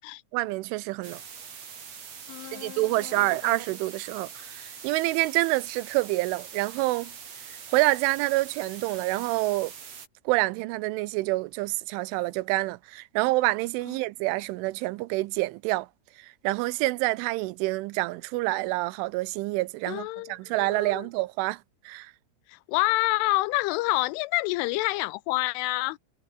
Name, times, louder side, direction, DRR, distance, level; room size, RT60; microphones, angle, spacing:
voice 1, 0.3-1.2 2.5-7.1 7.7-9.7 10.3-15.9 16.4-21.6 21.9-22.1, right 20 dB, 85° right, 3.1 m, -27 dB
sound 1, 1.0-10.1, right 6 dB, 40° right, 3.6 m, -43 dB
voice 2, 2.3-3.6 13.9-14.0 19.9-21.1 22.5-26.0, left 21 dB, 85° left, 3.1 m, -28 dB
omnidirectional pair, 5.6 m